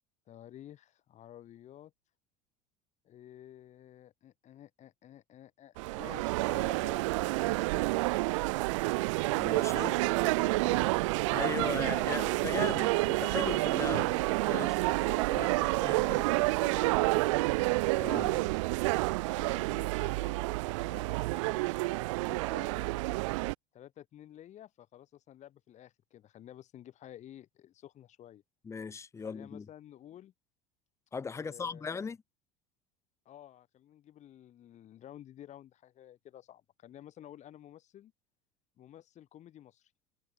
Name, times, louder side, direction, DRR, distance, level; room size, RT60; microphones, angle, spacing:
voice 1, 0.3-1.9 3.0-7.8 9.6-11.6 14.0-14.3 14.9-17.6 18.3-18.6 19.2-23.2 23.7-28.4 29.2-30.3 31.3-32.1 33.2-38.1 38.8-39.9, left 11 dB, 40° left, 4.3 m, -52 dB
sound 1, 5.8-23.5, right 23 dB, 60° right, 0.5 m, -29 dB
voice 2, 9.3-10.0 11.3-14.8 15.3-16.2 17.9-18.4 28.6-29.7 31.1-32.2, left 5 dB, 15° left, 0.6 m, -38 dB
figure-of-eight pair, 70°, 18 cm